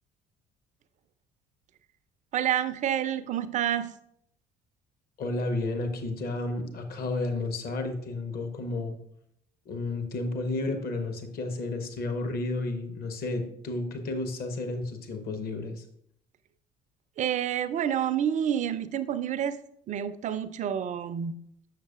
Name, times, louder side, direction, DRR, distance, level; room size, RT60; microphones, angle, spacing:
voice 1, 2.3-3.9 17.2-19.6 19.9-21.4, right 9 dB, 40° right, 13 dB, 0.4 m, -28 dB
voice 2, 5.2-9.0 9.7-15.8, left 2 dB, 50° left, 6 dB, 0.9 m, -32 dB
6.5 x 6.3 x 2.4 m, 0.71 s
hypercardioid pair, 55°, 20 cm